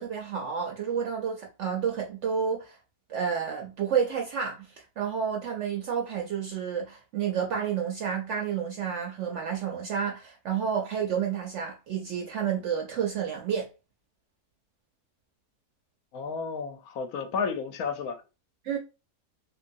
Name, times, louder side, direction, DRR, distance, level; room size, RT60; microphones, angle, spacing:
voice 1, 0.0-2.8 3.1-13.7 18.6-18.8, right 7 dB, 70° right, 0.7 m, -30 dB
voice 2, 16.1-18.2, left 5 dB, 75° left, 1.0 m, -32 dB
2.9 x 2.6 x 2.6 m
omnidirectional pair, 1.6 m